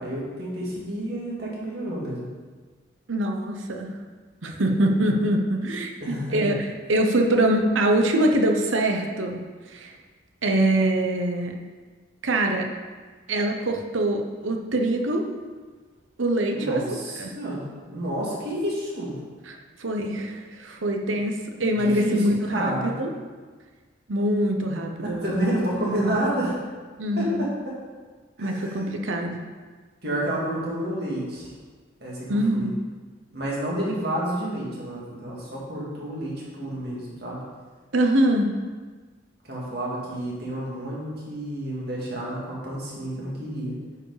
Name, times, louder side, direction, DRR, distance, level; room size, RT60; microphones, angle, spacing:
voice 1, 0.0-2.3 4.7-5.2 6.0-6.6 16.5-19.2 21.8-22.2 22.5-23.0 25.0-26.6 27.2-27.7 28.4-28.9 30.0-31.5 32.0-32.7 33.3-37.4 39.4-43.8, right 1 dB, 55° right, -5 dB, 2.4 m, -30 dB
voice 2, 3.1-3.9 4.4-6.6 6.9-9.4 9.7-9.9 10.4-11.5 12.2-12.7 13.3-15.3 16.2-17.3 19.5-23.1 24.1-25.3 27.0-27.5 28.4-29.4 32.3-32.7 37.9-38.5, right 1 dB, 80° right, 3 dB, 0.9 m, -24 dB
9.6 x 4.9 x 5.0 m, 1.4 s
head